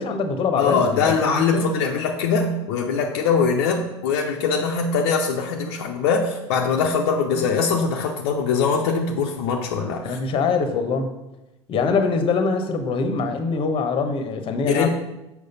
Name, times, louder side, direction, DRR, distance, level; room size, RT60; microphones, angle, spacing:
voice 1, 0.0-1.7 10.0-11.1 11.7-14.9, left 4 dB, 35° left, 7 dB, 1.0 m, -23 dB
voice 2, 0.6-10.2 14.7-14.9, left 5 dB, 60° left, 1 dB, 0.7 m, -22 dB
6.6 x 4.9 x 5.3 m, 0.95 s
figure-of-eight pair, 70°, 15 cm